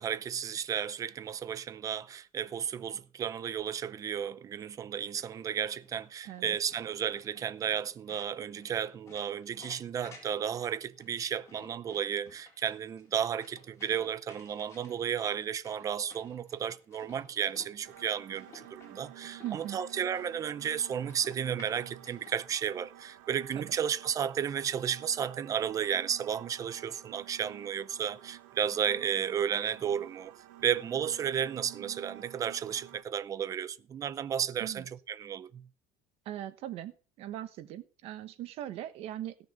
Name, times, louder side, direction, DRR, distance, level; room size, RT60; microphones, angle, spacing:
voice 1, 0.0-30.3 30.6-35.7, right 8 dB, 25° right, 0.6 m, -33 dB
sound 1, 4.9-22.4, left 3 dB, 25° left, 4.0 m, -57 dB
sound 2, 17.8-33.0, right 14 dB, 85° right, 1.2 m, -52 dB
voice 2, 19.4-19.8 23.5-23.7 34.6-34.9 36.2-36.9 37.2-39.5, right 12 dB, 50° right, 1.2 m, -40 dB
17.0 x 6.6 x 5.5 m
cardioid pair, 155°, 13 cm